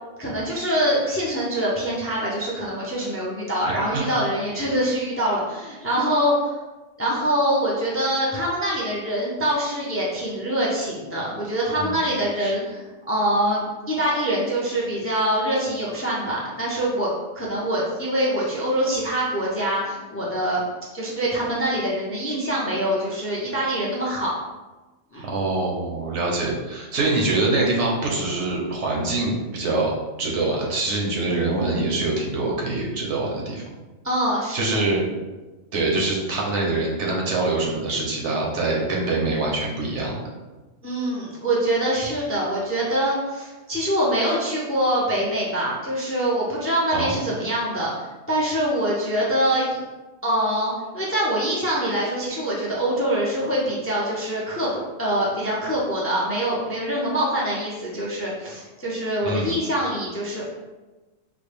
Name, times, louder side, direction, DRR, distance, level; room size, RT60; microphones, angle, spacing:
voice 1, 0.2-6.6 7.0-17.1 17.3-20.6 20.9-24.3 25.1-25.3 34.0-34.6 40.8-49.8 50.2-60.5, right 1 dB, 20° left, -5 dB, 0.4 m, -24 dB
voice 2, 25.2-33.6 34.5-35.0 35.7-40.2 46.9-47.1 59.2-59.5, right 2 dB, 75° right, -2 dB, 1.1 m, -24 dB
3.8 x 2.1 x 3.3 m, 1.2 s
omnidirectional pair, 1.2 m